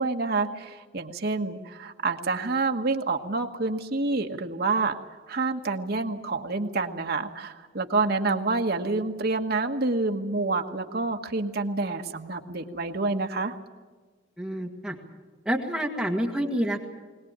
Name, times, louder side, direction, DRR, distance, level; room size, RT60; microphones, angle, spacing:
voice 1, 0.0-5.0 5.3-13.5, right 3 dB, 55° right, 4 dB, 1.5 m, -28 dB
voice 2, 14.4-15.0 15.5-16.9, equal, 5° right, 1 dB, 1.9 m, -28 dB
21.5 x 19.0 x 8.8 m, 1.3 s
head